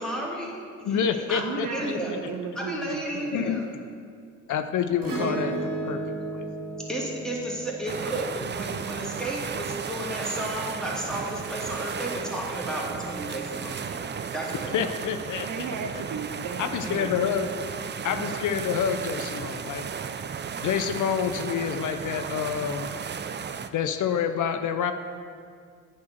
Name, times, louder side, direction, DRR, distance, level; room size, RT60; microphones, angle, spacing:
voice 1, 0.0-2.1 2.5-3.6 6.9-14.0 14.3-14.8, right 1 dB, ahead, -4 dB, 2.4 m, -33 dB
voice 2, 0.8-2.0 3.3-3.6 4.5-6.5 14.7-16.0 16.6-17.5 18.0-19.9 20.6-22.9 23.7-24.9, left 7 dB, 65° left, 8 dB, 0.6 m, -28 dB
voice 3, 1.4-3.5 15.4-17.4, right 5 dB, 70° right, 6 dB, 0.7 m, -35 dB
Acoustic guitar / Strum, 5.0-9.6 11.5-11.6, right 2 dB, 85° right, 1.6 m, -34 dB
sound 1, 7.9-23.7, right 6 dB, 35° right, 0.4 m, -34 dB
8.5 x 4.5 x 6.5 m, 2.1 s
supercardioid pair, 55°, 32 cm